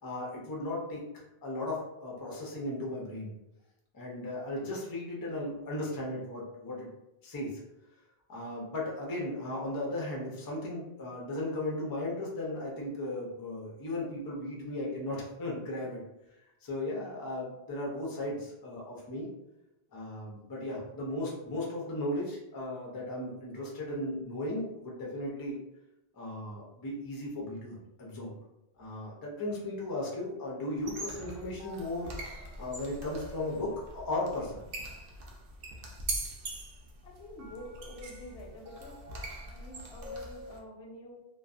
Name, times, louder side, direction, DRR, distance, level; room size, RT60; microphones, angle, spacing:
voice 1, 0.0-3.3 3.9-6.9 7.2-7.6 8.3-16.0 16.6-19.3 19.9-25.6 26.1-28.4 28.8-32.1 32.6-34.6, left 1 dB, 30° left, -3 dB, 0.4 m, -36 dB
sound 1, 30.8-40.6, right 2 dB, 65° right, 0.7 m, -42 dB
voice 2, 37.0-39.0 39.5-41.2, left 1 dB, 80° left, 0 dB, 0.9 m, -47 dB
2.5 x 2.2 x 2.4 m, 0.90 s
omnidirectional pair, 1.1 m